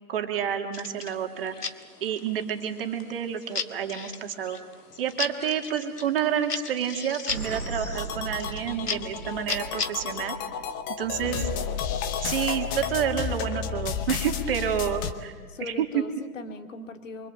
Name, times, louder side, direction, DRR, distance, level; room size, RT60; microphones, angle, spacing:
voice 1, 0.1-1.6 2.0-4.6 5.0-10.4 11.0-11.5 12.2-15.3 15.6-16.0, right 9 dB, 40° right, 4 dB, 2.5 m, -29 dB
sound 1, 0.7-10.3, left 4 dB, 85° left, 1.8 m, -37 dB
Explosion, 7.3-12.7, right 3 dB, 80° right, 2.5 m, -39 dB
sound 2, 7.9-15.1, left 7 dB, 15° left, 0.8 m, -32 dB
voice 2, 15.1-17.3, left 4 dB, 55° left, 7 dB, 2.3 m, -40 dB
25.5 x 24.5 x 8.0 m, 1.5 s
figure-of-eight pair, 140°, 45 cm